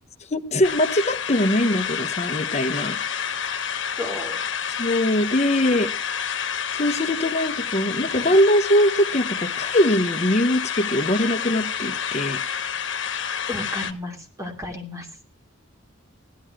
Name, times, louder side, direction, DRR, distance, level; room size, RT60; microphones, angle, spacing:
voice 1, 0.3-3.8 4.8-5.9 6.7-12.4, left 1 dB, 35° left, 0.9 m, -22 dB
sound 1, 0.6-13.9, left 7 dB, 65° left, 1.2 m, -29 dB
voice 2, 4.0-4.4 13.5-15.1, left 2 dB, 15° right, 2.6 m, -33 dB
16.0 x 11.5 x 4.8 m
head